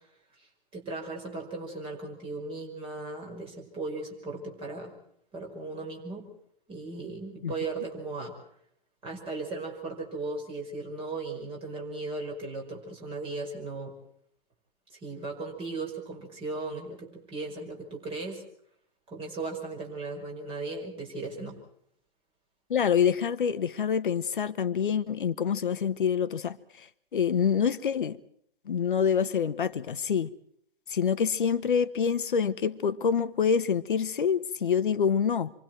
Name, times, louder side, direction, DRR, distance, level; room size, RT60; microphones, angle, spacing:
voice 1, 0.7-4.9 5.3-6.3 6.7-8.3 9.0-13.9 15.0-18.4 19.1-21.6, right 3 dB, 20° right, 5.6 m, -37 dB
voice 2, 22.7-26.6 27.1-28.2 28.7-30.3 30.9-35.5, left 7 dB, 60° left, 1.3 m, -26 dB
27.5 x 24.0 x 4.6 m
figure-of-eight pair, 120°, 29 cm